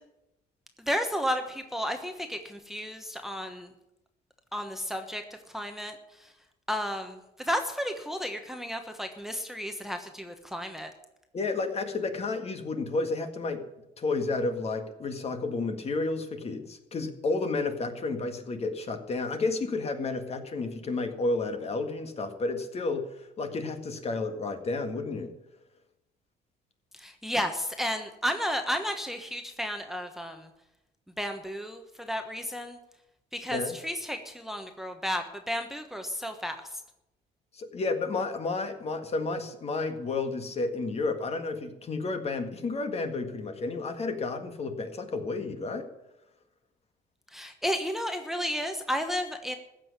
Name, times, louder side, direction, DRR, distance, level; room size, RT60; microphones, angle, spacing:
voice 1, 0.9-3.7 4.5-5.2 5.5-6.3 6.7-10.9 27.0-30.5 31.2-32.8 33.3-36.6 47.3-49.5, equal, ahead, 6 dB, 1.2 m, -32 dB
voice 2, 11.3-13.6 14.0-25.3 33.5-33.8 37.5-45.9, left 3 dB, 40° left, 7 dB, 1.8 m, -31 dB
15.0 x 6.4 x 9.6 m, 0.90 s
cardioid pair, 110°, 17 cm